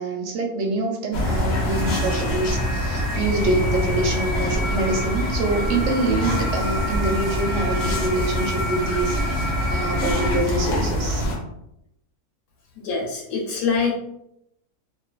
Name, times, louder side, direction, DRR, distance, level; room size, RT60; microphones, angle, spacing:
voice 1, 0.0-11.2, right 2 dB, 70° right, 2 dB, 0.8 m, -25 dB
sound 1, 1.1-11.4, left 1 dB, 55° left, 0.8 m, -25 dB
sound 2, 1.7-10.4, left 1 dB, 90° right, 1.1 m, -32 dB
voice 2, 12.8-14.0, left 5 dB, 85° left, -1 dB, 1.1 m, -24 dB
2.5 x 2.4 x 2.2 m, 0.80 s
omnidirectional pair, 1.5 m